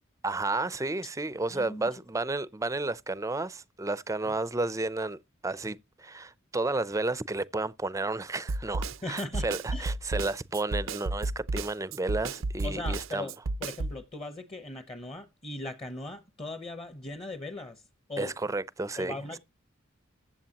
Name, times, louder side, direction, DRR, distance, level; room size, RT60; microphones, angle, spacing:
voice 1, 0.2-5.2 5.4-13.3 18.2-19.2, right 2 dB, 15° right, 0.5 m, -32 dB
voice 2, 1.5-1.9 4.3-4.4 9.0-9.9 12.6-13.3 13.6-17.8 18.1-18.3 19.0-19.4, left 2 dB, 30° left, 1.0 m, -39 dB
Snare drum, 8.5-14.0, right 2 dB, 80° right, 0.6 m, -32 dB
14.5 x 8.2 x 2.9 m
head